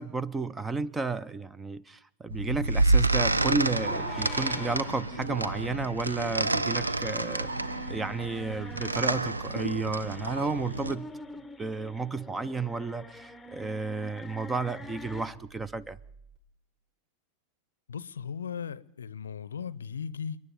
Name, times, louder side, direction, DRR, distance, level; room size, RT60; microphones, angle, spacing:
voice 1, 0.0-7.5 7.9-11.1 11.6-16.0, right 3 dB, 15° right, 0.7 m, -32 dB
sound 1, 2.3-11.0, right 2 dB, 80° right, 0.8 m, -29 dB
sound 2, 3.5-15.3, left 2 dB, 5° left, 1.0 m, -46 dB
sound 3, 14.5-16.4, right 1 dB, 40° right, 6.2 m, -52 dB
voice 2, 17.9-20.4, left 7 dB, 70° left, 0.7 m, -37 dB
29.0 x 9.7 x 9.2 m
figure-of-eight pair, 90°, 0 cm